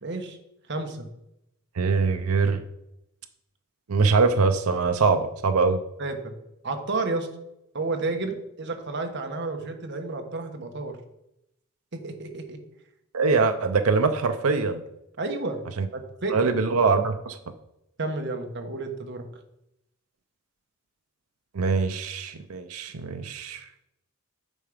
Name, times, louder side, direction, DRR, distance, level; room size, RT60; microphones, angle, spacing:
voice 1, 0.0-0.4 0.7-1.1 6.0-6.3 6.6-7.3 7.7-11.0 11.9-12.6 15.2-15.6 15.9-16.5 18.0-19.2, right 3 dB, 55° right, 5 dB, 1.2 m, -31 dB
voice 2, 1.8-2.6 3.9-5.8 13.1-14.8 15.8-15.9 16.3-17.4 21.5-23.7, right 4 dB, 80° right, 7 dB, 0.6 m, -23 dB
9.0 x 5.8 x 5.0 m, 0.84 s
head